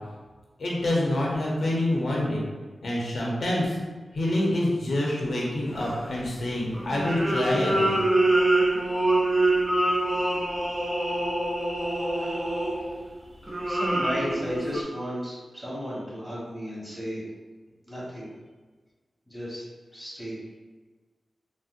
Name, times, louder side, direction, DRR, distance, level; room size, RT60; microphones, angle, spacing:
voice 1, 0.6-2.5 2.8-3.8 4.1-8.0, left 1 dB, 75° left, -4 dB, 0.7 m, -26 dB
sound 1, 5.7-6.2 6.7-13.0 13.5-14.8, right 2 dB, 25° right, 0.5 m, -25 dB
voice 2, 12.1-12.5 13.6-17.2 17.8-18.3 19.3-19.7 19.9-20.3, equal, 10° right, -8 dB, 1.2 m, -34 dB
3.9 x 2.0 x 2.5 m, 1.3 s
wide cardioid pair, 105°, 0 cm